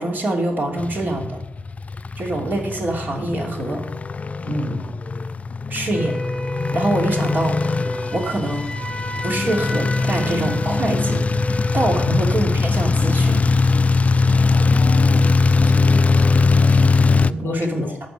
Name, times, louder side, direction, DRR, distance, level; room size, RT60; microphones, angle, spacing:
voice 1, 0.0-1.4 2.2-3.8 4.4-4.9 5.7-6.2 6.7-7.6 8.1-8.7 9.2-13.4 17.2-17.9, right 1 dB, 50° right, 0 dB, 2.8 m, -25 dB
sound 1, 0.8-17.3, left 4 dB, 35° left, 0.3 m, -20 dB
Wind instrument woodwind instrument, 5.9-12.3, left 1 dB, 5° left, 1.5 m, -31 dB
voice 2, 14.5-15.9 16.7-16.8 17.4-18.0, left 5 dB, 75° left, 12 dB, 0.7 m, -30 dB
11.5 x 5.3 x 8.2 m, 0.88 s
cardioid pair, 80°, 4 cm